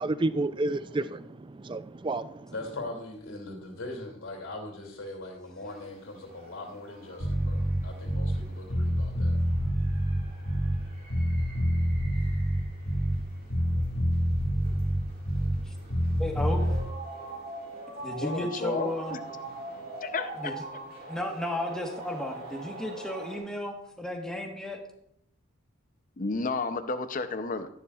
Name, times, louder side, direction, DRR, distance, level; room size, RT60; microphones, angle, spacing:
voice 1, 0.0-2.5, right 2 dB, 20° right, 0.4 m, -30 dB
voice 2, 2.5-9.4, left 2 dB, 70° left, 2.6 m, -41 dB
sound 1, 5.7-23.4, right 2 dB, 45° right, 4.3 m, -44 dB
Bass guitar, 7.2-8.4 8.7-10.8 11.1-13.2 13.5-15.6 15.9-16.8, equal, 85° left, 1.9 m, -27 dB
voice 3, 16.2-16.6 18.0-19.2 20.4-20.5 21.1-24.8, left 1 dB, 5° left, 1.3 m, -33 dB
voice 4, 18.2-19.2 20.0-20.6 26.2-27.7, left 3 dB, 40° left, 0.6 m, -32 dB
13.0 x 11.0 x 2.4 m
head